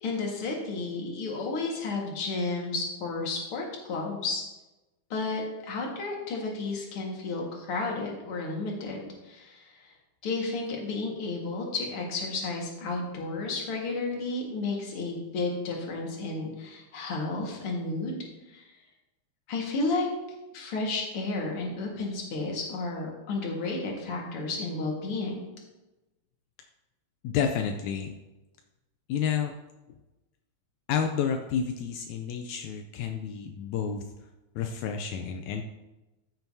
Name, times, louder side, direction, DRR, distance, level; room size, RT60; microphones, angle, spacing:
voice 1, 0.0-4.4 5.1-9.6 10.2-18.3 18.5-18.7 19.5-20.1 20.5-25.4, left 3 dB, 50° left, -1 dB, 2.4 m, -32 dB
voice 2, 27.2-28.1 29.1-29.5 30.9-34.0 34.6-35.6, left 7 dB, 85° left, 4 dB, 2.0 m, -30 dB
14.0 x 6.8 x 2.7 m, 1.0 s
omnidirectional pair, 3.4 m